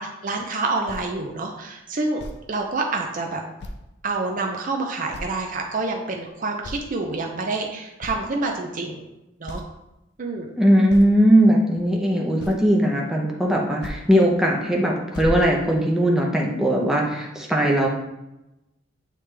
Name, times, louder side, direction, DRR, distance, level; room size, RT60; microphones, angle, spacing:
voice 1, 0.0-2.2 2.5-3.4 4.0-9.0 9.4-9.6 10.2-10.5, right 3 dB, 40° right, 2 dB, 0.5 m, -27 dB
sound 1, 0.9-1.1 2.2-2.4 3.6-3.9 4.4-4.5 5.1-5.4 5.9-6.3 6.6-6.9 7.6-7.7 8.0-8.2 9.0-9.1 9.5-9.7 10.9-11.2 12.4-12.8 13.8-14.0 14.5-14.7 15.1-16.1, left 1 dB, 55° left, 0.5 m, -34 dB
voice 2, 10.6-17.9, equal, 5° right, -2 dB, 0.8 m, -19 dB
8.9 x 3.3 x 3.3 m, 0.96 s
head